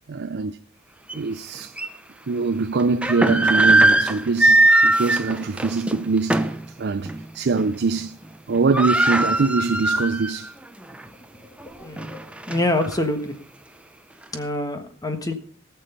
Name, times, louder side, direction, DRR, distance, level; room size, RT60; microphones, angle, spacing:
voice 1, 0.1-0.6 1.1-1.7 2.3-6.5 6.8-8.2 8.5-10.5, right 4 dB, 55° right, 0.5 m, -23 dB
sound 1, 1.1-1.2 1.8-1.9 2.8-6.6 7.1-7.2 7.6-8.0 8.2-8.3 8.5-10.5 10.9-11.0 11.6-12.9, right 2 dB, 5° right, 0.8 m, -20 dB
voice 2, 11.8-12.2 12.5-13.3 14.3-15.3, left 1 dB, 20° left, 1.4 m, -25 dB
18.0 x 7.0 x 5.5 m
head